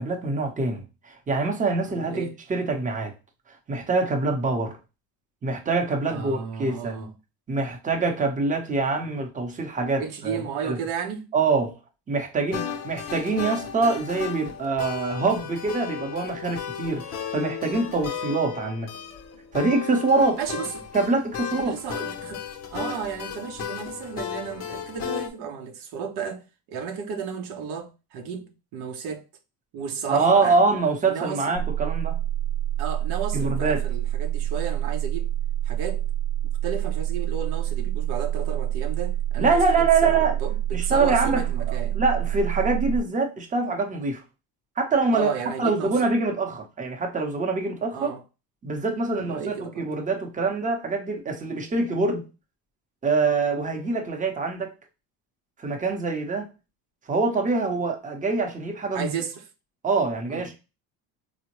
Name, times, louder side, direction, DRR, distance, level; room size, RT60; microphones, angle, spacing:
voice 1, 0.0-3.1 3.7-4.8 5.4-7.0 7.5-10.4 10.6-10.8 11.3-11.7 12.1-17.0 17.3-18.9 19.5-20.4 20.9-21.7 30.1-32.2 33.3-33.8 39.4-40.4 40.7-44.2 44.8-45.3 45.6-48.1 48.6-52.3 53.0-54.7 55.6-56.5 57.1-59.1 59.8-60.6, right 3 dB, 20° right, 0.7 m, -24 dB
voice 2, 1.8-2.4 6.1-7.2 10.0-11.3 20.4-20.8 21.5-22.4 22.7-29.2 29.7-30.6 31.1-31.6 32.8-35.3 35.6-36.1 36.6-42.0 45.1-46.1 47.9-48.2 49.2-49.9 58.9-59.4 60.3-60.5, right 7 dB, 80° right, 0.7 m, -33 dB
sound 1, 12.5-25.3, left 7 dB, 40° left, 0.6 m, -35 dB
sound 2, 31.5-43.0, right 12 dB, 85° left, 0.5 m, -27 dB
3.6 x 2.1 x 2.9 m
cardioid pair, 110°, 39 cm